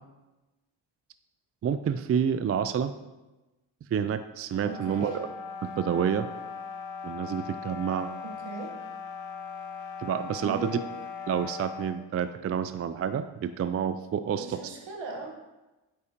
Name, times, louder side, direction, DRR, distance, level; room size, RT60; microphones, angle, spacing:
voice 1, 1.6-2.9 3.9-5.3 5.6-6.3 7.0-8.1 10.0-10.8 11.3-14.6, right 8 dB, 35° right, 11 dB, 0.4 m, -29 dB
sound 1, 4.5-12.0, left 5 dB, 85° left, 0.8 m, -39 dB
voice 2, 4.7-5.1 8.2-8.7 10.4-10.8 14.3-15.3, right 3 dB, 70° right, 1 dB, 1.5 m, -38 dB
8.5 x 4.8 x 2.9 m, 1.1 s
supercardioid pair, 50°, 46 cm